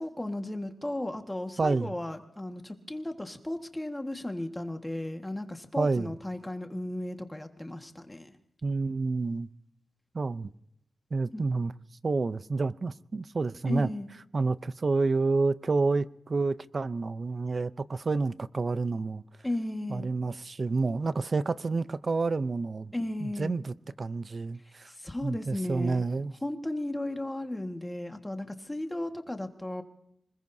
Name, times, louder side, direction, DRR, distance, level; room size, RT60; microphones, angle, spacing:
voice 1, 0.0-8.3 11.3-11.4 13.6-14.1 19.4-20.1 22.9-23.5 24.6-26.0 26.4-29.8, left 1 dB, 10° left, 1.6 m, -35 dB
voice 2, 1.6-1.9 5.8-6.1 8.6-9.5 10.1-10.5 11.1-11.7 12.0-13.9 14.3-19.2 19.9-22.9 23.2-24.9 25.2-26.3, right 3 dB, 40° right, 0.5 m, -29 dB
25.5 x 21.0 x 2.7 m
wide cardioid pair, 120°, 0 cm